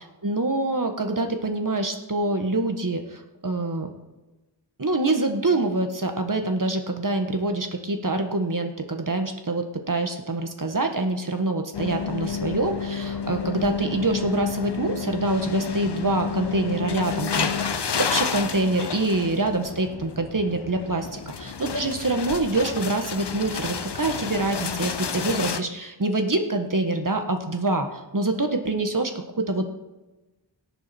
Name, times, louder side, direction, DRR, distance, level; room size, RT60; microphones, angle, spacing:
voice 1, 0.2-3.9 4.8-21.2 21.6-29.7, right 2 dB, 45° right, 5 dB, 1.6 m, -25 dB
sound 1, 11.7-25.6, left 6 dB, 65° left, 0.8 m, -30 dB
17.5 x 7.3 x 4.5 m, 1.1 s
wide cardioid pair, 60°, 44 cm